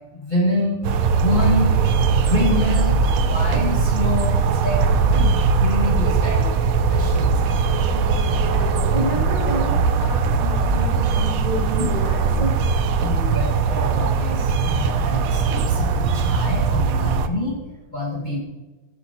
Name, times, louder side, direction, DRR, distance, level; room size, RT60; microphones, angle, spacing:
voice 1, 0.1-0.8 1.1-1.8 2.1-6.6 6.9-7.3 11.8-11.9 13.0-17.6 17.9-18.4, left 1 dB, 25° left, -4 dB, 1.7 m, -26 dB
sound 1, 0.8-17.3, right 5 dB, 65° right, 0.9 m, -20 dB
voice 2, 7.9-12.6, equal, 20° right, -4 dB, 2.8 m, -30 dB
14.0 x 8.2 x 3.0 m, 1.2 s
omnidirectional pair, 2.1 m